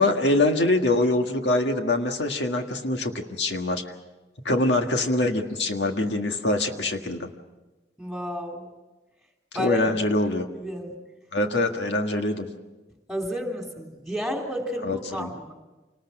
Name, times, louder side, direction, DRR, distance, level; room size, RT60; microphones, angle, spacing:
voice 1, 0.0-3.9 4.5-7.3 9.6-10.5 11.3-12.5 14.8-15.3, left 2 dB, 90° left, 4 dB, 1.8 m, -24 dB
voice 2, 8.0-8.7 9.5-10.0 10.5-10.9 11.9-12.0 13.1-15.5, equal, ahead, 1 dB, 3.5 m, -31 dB
27.5 x 20.0 x 6.1 m, 1.1 s
head